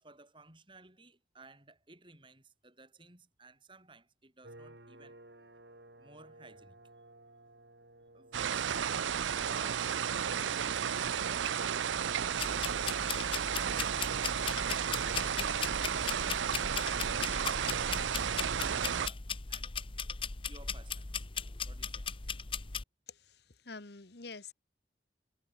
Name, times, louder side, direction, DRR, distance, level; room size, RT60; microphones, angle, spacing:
voice 1, 0.0-5.2 6.0-6.8 8.1-14.6 15.0-19.7 20.5-21.3 21.6-22.3, right 2 dB, 25° right, 6.6 m, -56 dB
sound 1, 4.4-19.7, right 1 dB, 65° right, 4.6 m, -60 dB
sound 2, 8.3-19.1, right 8 dB, 85° right, 0.6 m, -33 dB
sound 3, 12.4-22.8, left 6 dB, 30° left, 0.8 m, -38 dB
voice 2, 23.1-24.5, left 4 dB, 60° left, 1.3 m, -47 dB
head